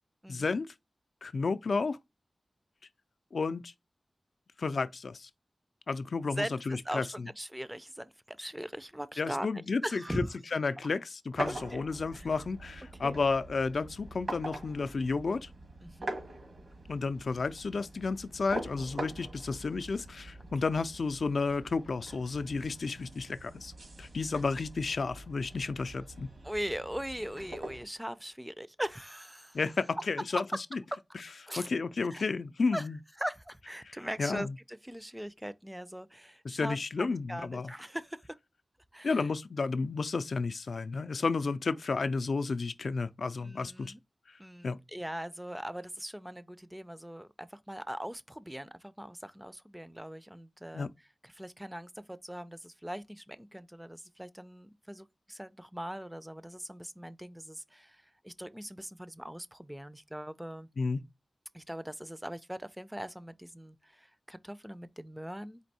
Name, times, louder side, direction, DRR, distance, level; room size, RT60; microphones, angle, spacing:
voice 1, 0.3-0.7 1.2-2.0 3.3-3.7 4.6-5.3 5.9-7.3 9.2-10.2 10.5-15.5 16.9-23.7 24.0-26.3 29.5-30.4 31.6-33.0 34.2-34.5 36.4-37.7 39.0-43.9 44.6-44.8 50.7-50.9 60.8-61.0, left 4 dB, 75° left, 0.3 m, -32 dB
voice 2, 6.4-9.5 9.8-10.3 11.5-11.8 12.1-12.3 13.0-13.2 15.8-16.2 24.3-24.4 26.4-29.6 30.9-31.0 31.5-31.7 32.0-32.3 32.7-32.9 33.2-38.3 38.9-39.3 43.4-44.0 44.4-50.9 51.2-60.7 61.5-65.6, equal, 10° right, 0.4 m, -40 dB
sound 1, 11.3-27.8, right 1 dB, 75° right, 1.6 m, -44 dB
4.4 x 2.6 x 4.0 m
wide cardioid pair, 70°, 0 cm